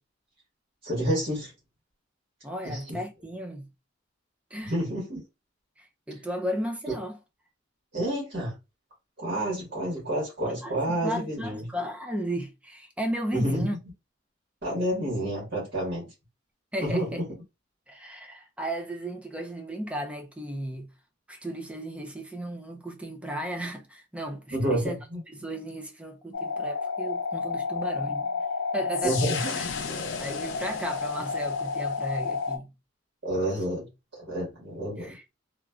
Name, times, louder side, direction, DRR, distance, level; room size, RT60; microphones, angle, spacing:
voice 1, 0.8-1.5 2.6-3.0 4.6-5.2 7.9-8.5 9.2-11.7 13.3-13.7 14.6-16.0 16.8-17.2 24.5-25.2 29.0-29.5 33.2-33.9 34.2-35.1, right 1 dB, 55° right, 1.5 m, -29 dB
voice 2, 2.4-3.7 4.5-4.7 5.8-7.2 10.4-13.8 16.7-17.2 17.9-20.9 21.3-25.0 25.3-28.4 28.7-29.7 30.2-32.7 35.0-35.2, equal, 5° right, 0.4 m, -35 dB
sound 1, 26.3-32.6, left 5 dB, 70° left, 0.5 m, -31 dB
3.0 x 2.4 x 2.3 m
head